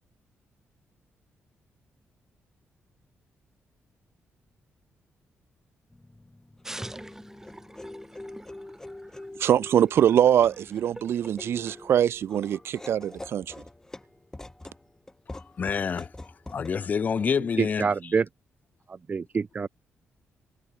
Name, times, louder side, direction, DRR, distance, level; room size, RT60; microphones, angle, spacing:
sound 1, 5.9-16.8, left 2 dB, 10° left, 7.7 m, -45 dB
sound 2, 6.6-12.3, right 1 dB, 10° right, 5.6 m, -46 dB
voice 1, 9.4-13.5, right 10 dB, 65° right, 0.4 m, -23 dB
voice 2, 15.3-16.1 16.5-17.9, left 6 dB, 40° left, 0.4 m, -27 dB
voice 3, 17.4-18.3 18.9-19.7, right 5 dB, 35° right, 1.9 m, -27 dB
cardioid pair, 130°, 4 cm